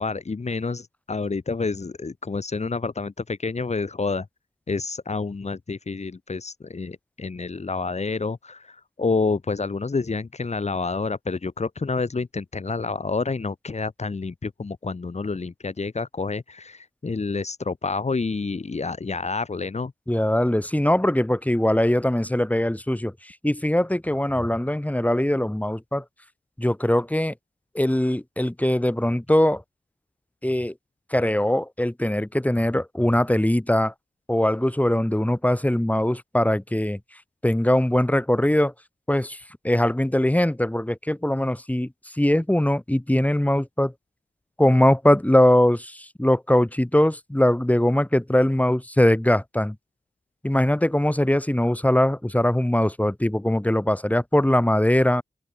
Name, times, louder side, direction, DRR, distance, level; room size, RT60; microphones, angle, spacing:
voice 1, 0.0-4.3 4.7-19.9, left 4 dB, 50° left, 3.0 m, -28 dB
voice 2, 20.1-26.0 26.6-27.3 27.7-29.6 30.4-30.7 31.1-33.9 34.3-37.0 37.4-38.7 39.1-39.4 39.6-41.9 42.2-43.9 44.6-49.7 50.4-55.2, left 1 dB, 10° left, 6.3 m, -21 dB
open air
wide cardioid pair, 75°, 14 cm